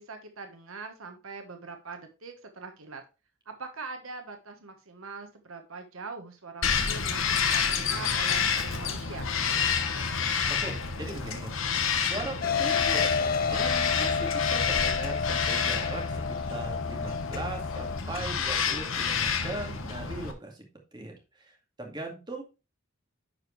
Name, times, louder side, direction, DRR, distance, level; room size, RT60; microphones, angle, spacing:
voice 1, 0.0-3.0 3.5-9.3, right 4 dB, 80° right, 6 dB, 1.3 m, -42 dB
Bird vocalization bird call bird song, 6.6-20.3, left 6 dB, 70° left, 1.1 m, -29 dB
voice 2, 10.6-11.5 12.0-20.6 20.9-21.5 21.8-22.4, right 2 dB, 20° right, 0 dB, 2.1 m, -39 dB
sound 1, 12.4-18.0, left 5 dB, 45° left, 0.4 m, -30 dB
10.5 x 4.8 x 3.2 m, 0.29 s
head